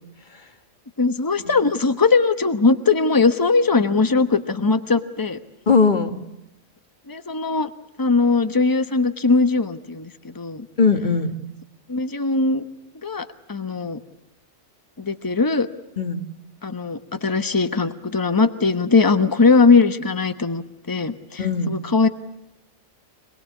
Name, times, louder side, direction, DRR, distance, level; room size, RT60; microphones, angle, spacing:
voice 1, 1.0-5.4 7.1-7.7 8.0-10.7 11.9-12.7 13.0-14.0 15.0-15.7 16.6-20.6 20.9-22.1, left 4 dB, 15° left, 10 dB, 1.0 m, -20 dB
voice 2, 5.7-6.2 10.8-11.3 16.0-16.2 21.4-21.7, left 4 dB, 35° left, 8 dB, 1.5 m, -20 dB
26.0 x 20.0 x 8.4 m, 0.90 s
omnidirectional pair, 1.4 m